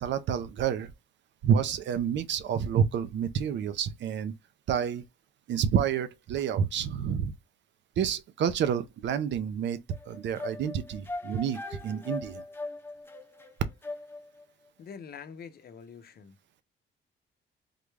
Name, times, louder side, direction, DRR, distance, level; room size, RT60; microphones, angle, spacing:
voice 1, 0.0-0.9 1.4-4.3 4.7-5.0 5.5-7.3 8.0-9.8 10.1-12.4, right 8 dB, 65° right, 0.5 m, -29 dB
sound 1, 9.9-14.4, left 2 dB, 10° left, 0.6 m, -40 dB
voice 2, 14.8-16.4, left 6 dB, 50° left, 0.7 m, -45 dB
3.8 x 2.2 x 3.1 m
cardioid pair, 90°, 20 cm